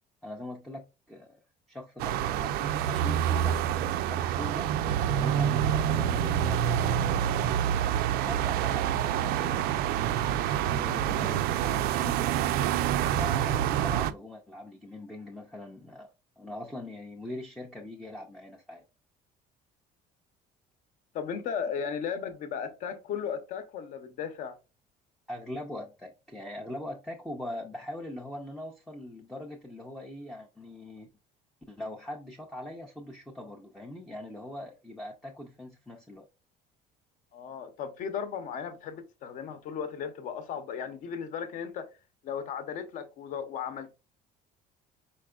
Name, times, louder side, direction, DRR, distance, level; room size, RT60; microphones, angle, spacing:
voice 1, 0.2-1.4 1.7-4.7 5.1-7.6 8.1-9.8 10.7-12.3 13.1-18.8 25.3-31.1 31.7-36.3, left 1 dB, ahead, 0.4 m, -41 dB
sound 1, 2.0-14.1, right 10 dB, 65° right, 0.4 m, -27 dB
voice 2, 21.1-24.6 37.3-41.9 42.2-43.9, left 7 dB, 50° left, 0.7 m, -36 dB
4.6 x 4.3 x 2.3 m
cardioid pair, 175°, 17 cm